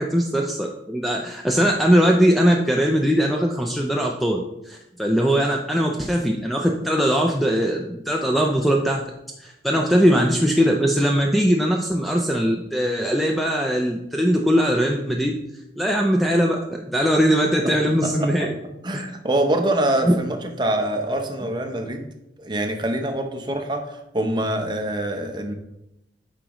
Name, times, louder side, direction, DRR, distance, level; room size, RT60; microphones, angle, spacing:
voice 1, 0.0-4.4 4.7-9.0 9.4-15.3 15.8-18.5 18.9-19.0 20.1-20.2, equal, ahead, 1 dB, 0.4 m, -20 dB
voice 2, 17.6-18.5 18.8-22.1 22.4-25.5, right 1 dB, 25° right, 4 dB, 0.7 m, -25 dB
8.7 x 5.0 x 3.0 m, 0.86 s
head